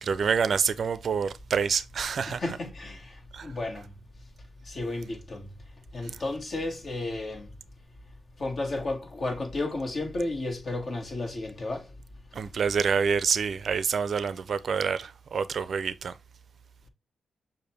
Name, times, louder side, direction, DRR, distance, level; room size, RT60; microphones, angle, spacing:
voice 1, 0.0-2.4 3.3-3.5 12.3-16.1, right 6 dB, 60° right, 0.4 m, -27 dB
voice 2, 2.3-3.0 3.4-3.8 4.7-5.4 5.9-7.4 8.4-11.8, left 2 dB, 50° left, 1.7 m, -32 dB
6.6 x 2.5 x 3.2 m
cardioid pair, 75°, 0 cm